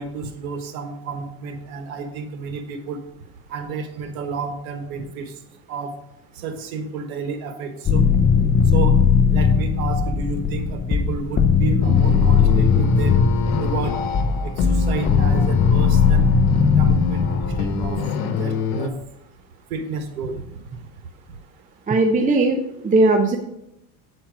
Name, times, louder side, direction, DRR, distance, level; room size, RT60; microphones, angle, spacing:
voice 1, 0.0-3.0 3.5-5.3 5.7-5.9 6.4-8.0 8.7-9.0 9.3-13.1 13.6-13.9 14.4-16.2 16.8-18.9 19.7-20.4, right 5 dB, 90° right, 6 dB, 1.3 m, -31 dB
sound 1, 7.9-17.9, left 6 dB, 25° left, 0.7 m, -18 dB
sound 2, 11.8-18.9, left 4 dB, 80° left, 1.1 m, -25 dB
voice 2, 21.9-23.4, right 2 dB, 20° right, 3 dB, 0.7 m, -18 dB
8.6 x 4.5 x 5.0 m, 0.84 s
supercardioid pair, 105°, 41 cm